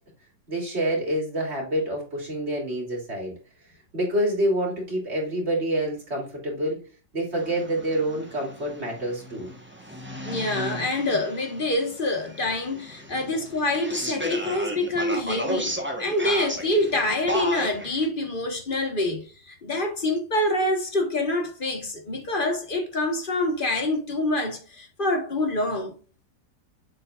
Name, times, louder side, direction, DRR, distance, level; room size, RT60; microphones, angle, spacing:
voice 1, 0.5-3.3 3.9-6.8 7.1-9.5, right 1 dB, 35° right, 3.3 m, -27 dB
sound 1, 7.3-18.1, equal, 10° right, 1.0 m, -34 dB
voice 2, 10.2-25.9, left 1 dB, 30° left, 1.3 m, -26 dB
7.4 x 6.0 x 2.4 m
omnidirectional pair, 2.0 m